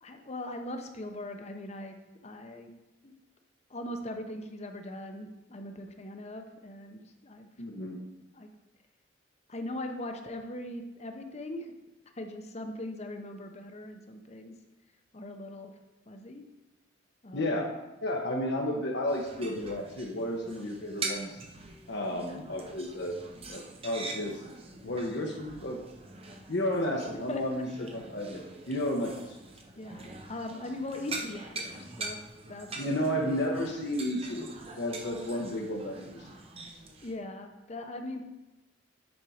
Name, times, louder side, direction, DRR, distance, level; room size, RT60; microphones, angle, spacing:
voice 1, 0.0-2.0 2.2-2.7 3.0-3.1 3.7-7.5 8.3-8.5 9.5-11.7 12.2-14.5 15.1-15.7 16.1-16.4 17.2-17.5 22.0-22.2 27.1-27.4 29.8-32.2 32.5-32.9 37.0-38.2, left 1 dB, 35° left, 5 dB, 0.8 m, -40 dB
voice 2, 7.6-8.0 17.3-17.7 18.0-21.4 21.9-23.1 23.5-24.4 24.8-25.8 26.5-29.4 32.8-34.5 34.8-36.3, left 1 dB, 60° left, -1 dB, 1.0 m, -32 dB
sound 1, 19.1-37.2, right 3 dB, 30° right, 0.7 m, -43 dB
9.6 x 4.5 x 5.0 m, 1.0 s
head